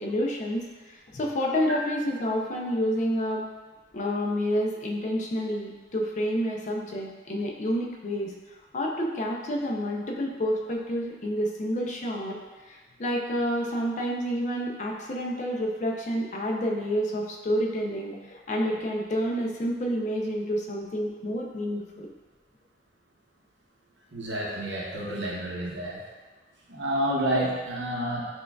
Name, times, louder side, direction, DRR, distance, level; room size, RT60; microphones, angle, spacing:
voice 1, 0.0-3.5 3.9-8.3 8.7-12.4 12.7-22.1, equal, 40° left, 0 dB, 0.4 m, -29 dB
voice 2, 24.1-26.0 26.7-28.2, right 1 dB, 70° right, -3 dB, 0.8 m, -29 dB
6.1 x 2.3 x 2.3 m, 1.3 s
head